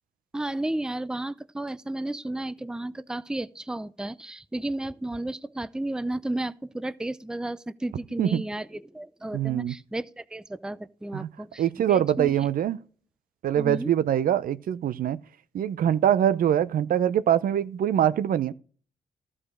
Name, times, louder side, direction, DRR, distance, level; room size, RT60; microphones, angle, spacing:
voice 1, 0.3-12.4 13.5-13.9, right 1 dB, 5° right, 0.5 m, -33 dB
voice 2, 9.3-9.7 11.1-11.3 11.6-12.8 13.4-15.2 15.5-18.5, right 10 dB, 70° right, 0.5 m, -23 dB
12.5 x 4.9 x 6.2 m
cardioid pair, 60°, 15 cm